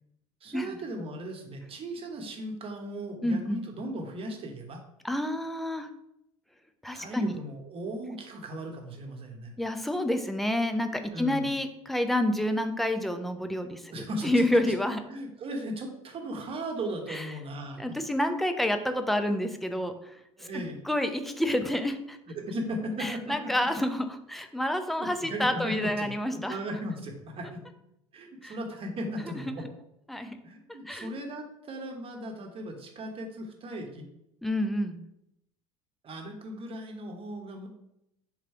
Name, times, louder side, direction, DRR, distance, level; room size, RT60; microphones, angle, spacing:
voice 1, 0.4-4.8 6.9-9.5 11.1-11.5 13.9-14.3 15.1-18.0 20.4-20.8 22.3-23.2 24.9-27.6 28.1-29.6 30.4-34.1 36.0-37.7, right 1 dB, 35° right, 3 dB, 1.1 m, -37 dB
voice 2, 3.2-3.6 5.0-5.9 6.8-7.4 9.6-13.9 14.2-15.0 17.1-17.3 17.8-22.2 23.0-26.6 28.4-28.6 29.5-29.6 30.1-30.4 30.9-31.1 34.4-35.0, left 1 dB, ahead, 7 dB, 0.5 m, -29 dB
3.8 x 3.2 x 4.4 m, 0.81 s
figure-of-eight pair, 70°, 17 cm